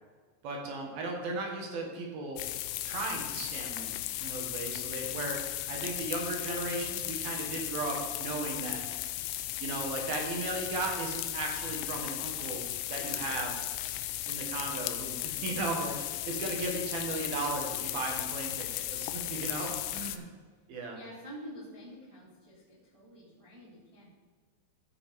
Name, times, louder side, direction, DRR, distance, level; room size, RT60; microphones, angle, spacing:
voice 1, 0.4-2.4 2.8-8.8 9.6-13.6 14.3-16.0 16.3-20.3 20.7-21.0, right 2 dB, 60° right, 0 dB, 3.0 m, -36 dB
sound 1, 2.4-20.2, left 14 dB, 85° left, 2.9 m, -36 dB
voice 2, 19.4-19.7 20.1-20.2 20.9-24.1, equal, 10° right, -10 dB, 1.9 m, -48 dB
15.0 x 6.4 x 3.6 m, 1.5 s
omnidirectional pair, 5.3 m